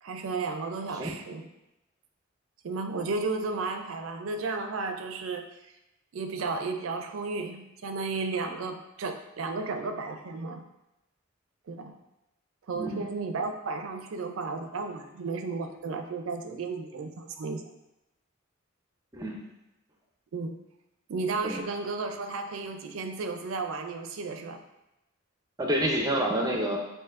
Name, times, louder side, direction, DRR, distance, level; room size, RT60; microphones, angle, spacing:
voice 1, 0.0-1.5 2.6-5.7 6.1-10.7 11.7-11.9 12.7-17.6 20.3-20.6 21.1-24.6, right 3 dB, 85° right, 6 dB, 0.4 m, -33 dB
voice 2, 12.7-13.1 19.1-19.4 21.4-21.6 25.6-26.8, right 1 dB, 20° right, 0 dB, 0.6 m, -28 dB
7.2 x 2.6 x 2.5 m, 0.92 s
head